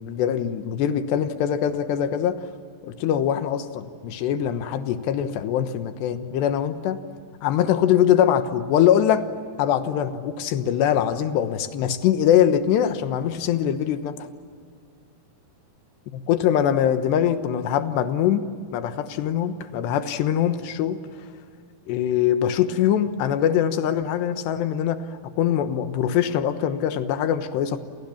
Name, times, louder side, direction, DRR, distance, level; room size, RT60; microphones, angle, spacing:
voice 1, 0.0-2.4 2.8-7.0 7.4-9.3 9.6-14.3 16.1-18.4 18.7-21.0 21.9-25.1 25.4-27.8, left 10 dB, 80° left, 10 dB, 3.4 m, -22 dB
29.0 x 28.5 x 7.2 m, 2.3 s
omnidirectional pair, 4.9 m